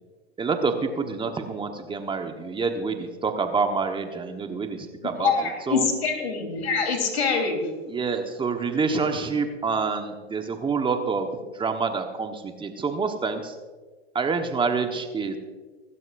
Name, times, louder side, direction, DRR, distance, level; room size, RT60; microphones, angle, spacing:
voice 1, 0.4-5.3 5.7-5.8 7.9-11.3 11.6-13.5 14.1-15.4, right 4 dB, 15° right, 6 dB, 1.2 m, -27 dB
voice 2, 5.2-7.7, left 5 dB, 75° left, 4 dB, 3.6 m, -25 dB
24.5 x 12.5 x 2.6 m, 1.4 s
hypercardioid pair, 105°, 32 cm